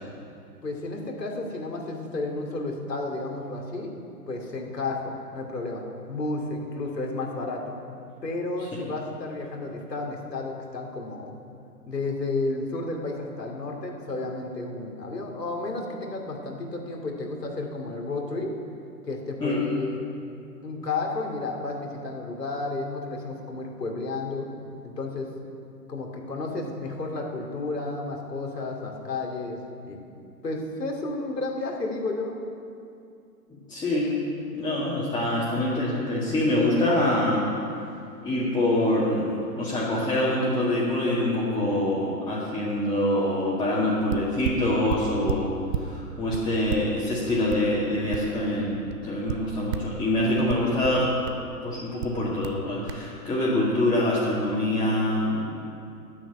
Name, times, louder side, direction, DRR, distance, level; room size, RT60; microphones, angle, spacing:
voice 1, 0.6-3.9 4.3-5.8 6.1-7.7 8.2-11.3 11.9-18.5 19.1-19.9 20.6-24.5 24.8-25.3 25.9-29.6 29.8-30.0 30.4-32.4, left 2 dB, 85° left, 1 dB, 2.7 m, -32 dB
voice 2, 33.5-34.2 34.5-37.5 38.2-51.1 51.6-55.6, left 1 dB, 10° left, -8 dB, 1.8 m, -25 dB
sound 1, 43.8-43.9 44.1-45.9 46.3-48.6 48.9-50.0 50.5-51.5 52.0-52.6 52.9-53.1, right 8 dB, 45° right, 0.8 m, -33 dB
9.7 x 8.3 x 9.0 m, 2.5 s
hypercardioid pair, 125°, 47 cm